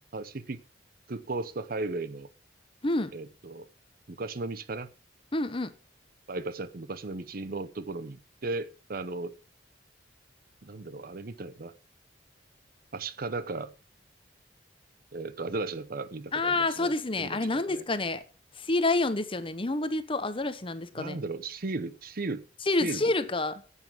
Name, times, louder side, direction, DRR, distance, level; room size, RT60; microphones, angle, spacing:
voice 1, 0.1-0.6 1.1-2.3 3.1-3.7 4.1-4.9 6.3-9.3 10.6-11.7 12.9-13.7 15.1-17.8 21.0-22.4 22.8-23.0, right 3 dB, 55° right, 0.8 m, -36 dB
voice 2, 5.3-5.7 16.3-18.2 18.6-21.2 22.7-23.6, left 2 dB, 30° left, 1.0 m, -28 dB
9.2 x 8.4 x 7.1 m
head